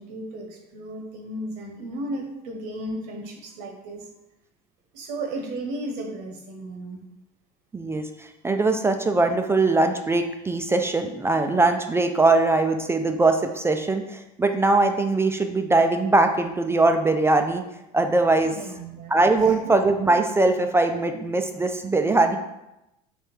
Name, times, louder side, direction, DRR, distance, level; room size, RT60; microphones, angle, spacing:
voice 1, 0.0-4.1 4.9-7.0 18.4-19.7, right 1 dB, 75° right, 3 dB, 1.0 m, -35 dB
voice 2, 7.7-17.6 17.9-18.5 19.1-22.4, right 2 dB, 10° right, 6 dB, 0.3 m, -21 dB
3.5 x 3.2 x 4.4 m, 0.91 s
hypercardioid pair, 90°, 21 cm